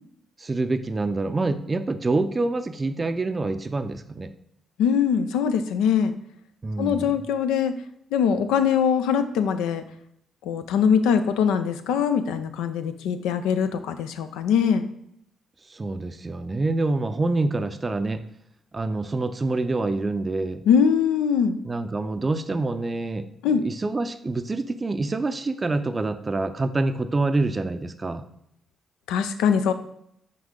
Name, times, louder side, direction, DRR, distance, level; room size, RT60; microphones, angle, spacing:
voice 1, 0.4-4.3 6.6-7.1 15.7-18.2 18.7-20.6 21.7-28.2, right 2 dB, 35° right, 10 dB, 0.5 m, -26 dB
voice 2, 4.8-6.1 6.8-7.8 8.1-9.8 10.4-14.9 20.7-21.6 23.4-23.6 29.1-29.7, left 7 dB, 80° left, 9 dB, 0.4 m, -22 dB
6.0 x 4.6 x 3.7 m, 0.74 s
hypercardioid pair, 45°, 0 cm